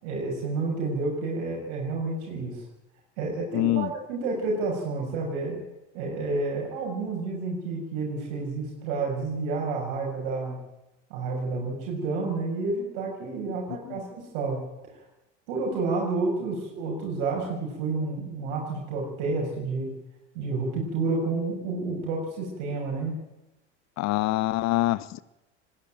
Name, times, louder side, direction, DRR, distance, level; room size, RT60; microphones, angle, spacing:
voice 1, 0.0-2.6 3.2-5.6 5.9-10.6 11.1-14.6 15.5-20.0 20.3-23.2, right 3 dB, 65° right, -1 dB, 6.7 m, -30 dB
voice 2, 3.5-3.9 13.5-14.0 24.0-25.2, left 17 dB, 45° left, 19 dB, 1.0 m, -26 dB
20.5 x 15.5 x 9.2 m, 0.96 s
hypercardioid pair, 75°, 37 cm